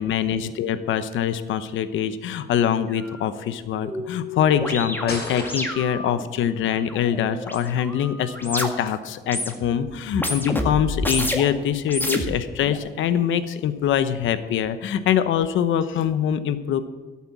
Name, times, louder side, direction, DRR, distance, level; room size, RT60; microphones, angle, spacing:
voice 1, 0.0-16.8, left 9 dB, 80° left, 12 dB, 0.8 m, -24 dB
sound 1, 2.9-3.0 3.3-9.0 9.2-9.8 10.1-11.5 11.9-12.8, left 1 dB, 10° left, 1.9 m, -30 dB
sound 2, 5.1-6.0, left 2 dB, 55° left, 4.6 m, -33 dB
12.5 x 8.5 x 7.2 m, 1.2 s
cardioid pair, 90°, 20 cm